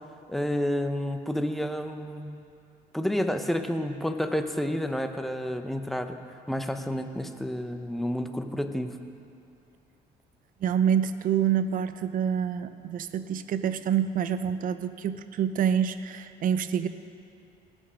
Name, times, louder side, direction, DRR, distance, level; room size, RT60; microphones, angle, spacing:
voice 1, 0.3-2.4 2.9-6.2 6.5-8.9, equal, ahead, 7 dB, 0.7 m, -30 dB
voice 2, 10.6-16.9, right 8 dB, 55° right, 12 dB, 0.6 m, -27 dB
19.0 x 6.4 x 5.5 m, 2.6 s
cardioid pair, 110°, 17 cm